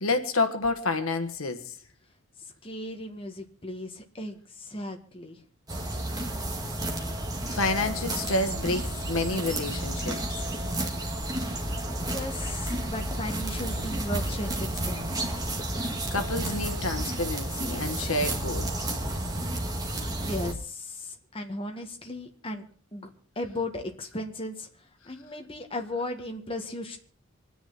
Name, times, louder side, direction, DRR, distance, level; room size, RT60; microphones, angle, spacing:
voice 1, 0.0-1.8 7.4-10.5 16.1-18.9, left 2 dB, 80° left, 1.4 m, -29 dB
voice 2, 2.6-5.4 11.9-15.1 20.0-22.6 22.9-24.7 25.1-27.0, left 1 dB, 25° left, 1.8 m, -36 dB
sound 1, 5.7-20.5, right 1 dB, 20° right, 2.1 m, -31 dB
26.5 x 10.0 x 4.2 m
head